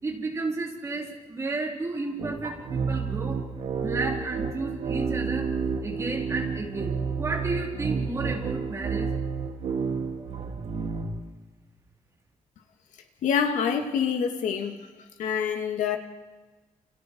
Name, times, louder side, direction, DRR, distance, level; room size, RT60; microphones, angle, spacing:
voice 1, 0.0-3.4 3.8-5.5 5.8-9.1, right 3 dB, 25° right, 4.2 m, -32 dB
sound 1, 2.2-11.2, right 5 dB, 60° right, 2.9 m, -30 dB
voice 2, 13.2-14.9 15.2-16.0, left 7 dB, 85° left, 2.6 m, -26 dB
29.5 x 28.5 x 4.8 m
wide cardioid pair, 175°, 12 cm